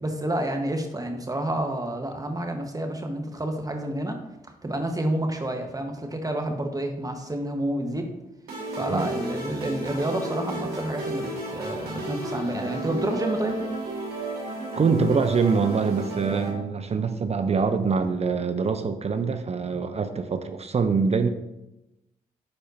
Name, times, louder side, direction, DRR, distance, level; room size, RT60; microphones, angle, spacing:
voice 1, 0.0-4.2 4.6-8.1 8.7-13.6, right 1 dB, 25° right, 4 dB, 1.2 m, -29 dB
sound 1, 8.5-16.5, right 2 dB, 85° right, 1.5 m, -33 dB
voice 2, 14.8-21.3, right 5 dB, 40° right, 9 dB, 0.6 m, -24 dB
9.6 x 4.3 x 2.7 m, 0.92 s
supercardioid pair, 45°, 16 cm